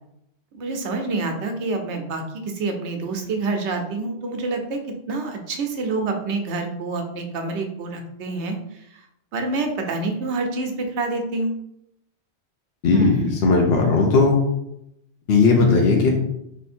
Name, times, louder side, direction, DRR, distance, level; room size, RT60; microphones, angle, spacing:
voice 1, 0.5-2.2 2.5-4.8 5.1-8.6 9.3-11.5 12.9-13.3, right 3 dB, 85° right, 4 dB, 1.0 m, -27 dB
voice 2, 12.8-13.2 13.4-14.4 15.3-16.1, left 4 dB, 65° left, 0 dB, 1.0 m, -16 dB
3.4 x 3.1 x 4.3 m, 0.80 s
omnidirectional pair, 1.1 m